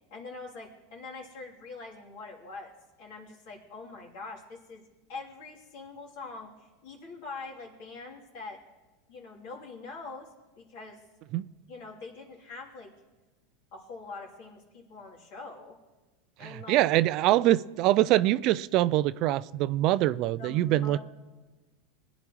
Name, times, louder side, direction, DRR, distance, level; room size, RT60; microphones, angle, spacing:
voice 1, 0.1-2.7 3.0-4.8 5.1-8.6 9.1-10.3 10.6-11.0 11.7-12.9 13.7-15.8 16.4-16.8 20.4-21.0, left 3 dB, 65° left, 3.0 m, -44 dB
voice 2, 16.4-21.0, right 15 dB, 55° right, 0.3 m, -24 dB
20.5 x 10.0 x 3.1 m
hypercardioid pair, 105°, 0 cm